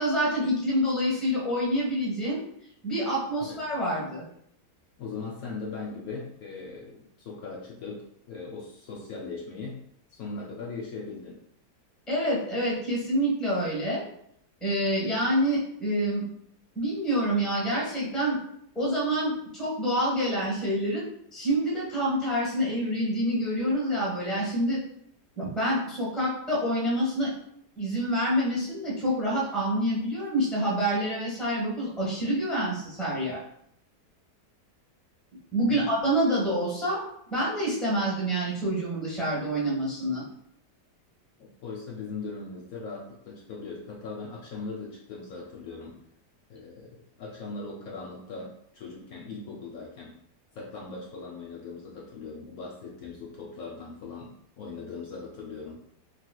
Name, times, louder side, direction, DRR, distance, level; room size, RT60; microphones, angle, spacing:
voice 1, 0.0-2.4 2.8-4.2 12.1-14.0 14.6-16.2 16.7-18.4 18.7-21.0 21.3-24.8 25.4-27.3 27.8-33.4 35.5-37.0 37.3-40.2, equal, ahead, -6 dB, 0.8 m, -27 dB
voice 2, 5.0-9.8 10.1-11.4 33.2-33.3 35.7-35.9 41.6-46.0 46.5-50.2 50.5-54.3 54.6-55.8, left 4 dB, 70° left, -3 dB, 1.0 m, -39 dB
3.2 x 2.9 x 2.2 m, 0.71 s
omnidirectional pair, 1.8 m